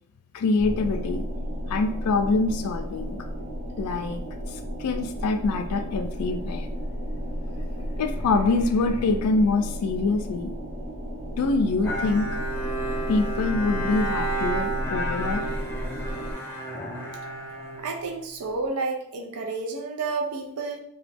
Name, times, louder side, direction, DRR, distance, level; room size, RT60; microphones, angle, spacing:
voice 1, 0.3-1.3 1.7-3.2 3.8-4.2 4.5-6.7 8.0-10.5 11.4-12.3 13.1-15.4, left 3 dB, 90° left, 6 dB, 0.4 m, -25 dB
sound 1, 0.6-16.3, equal, 55° right, 0.8 m, -33 dB
Bowed string instrument, 11.8-18.5, right 2 dB, 10° left, 0.6 m, -31 dB
voice 2, 17.8-20.8, right 3 dB, 80° right, 2 dB, 0.5 m, -30 dB
2.9 x 2.3 x 3.4 m, 0.73 s
head